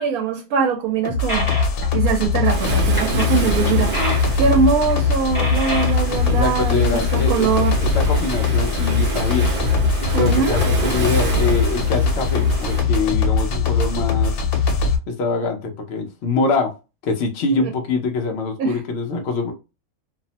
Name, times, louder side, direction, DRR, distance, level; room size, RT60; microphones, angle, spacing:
voice 1, 0.0-1.5 1.9-7.8 10.1-10.5 17.5-17.7 18.6-18.8, right 6 dB, 90° right, 1.1 m, -22 dB
sound 1, 1.0-15.0, left 4 dB, 90° left, 1.1 m, -20 dB
sound 2, 1.3-1.9 3.0-3.3 3.7-4.3 4.6-5.0 5.3-5.9, left 1 dB, 25° left, 0.7 m, -27 dB
Waves surf, 2.4-12.8, right 2 dB, 50° right, 0.6 m, -29 dB
voice 2, 6.3-7.5 7.8-9.5 10.2-14.4 15.1-16.7 17.0-19.5, left 3 dB, 60° left, 0.8 m, -24 dB
2.7 x 2.0 x 2.7 m
omnidirectional pair, 1.5 m